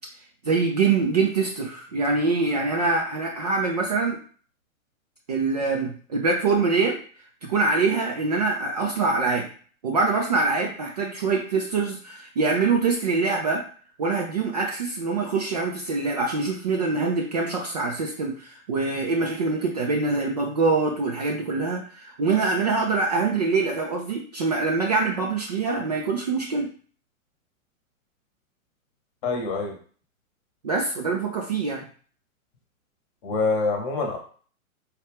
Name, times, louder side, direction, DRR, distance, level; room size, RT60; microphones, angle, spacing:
voice 1, 0.4-4.2 5.3-7.0 7.4-9.5 9.8-13.6 14.0-26.7 30.6-31.8, right 4 dB, 30° right, 0 dB, 0.4 m, -24 dB
voice 2, 29.2-29.8 33.2-34.2, left 4 dB, 30° left, 2 dB, 1.0 m, -25 dB
4.4 x 2.4 x 3.4 m, 0.43 s
figure-of-eight pair, 115°, 42 cm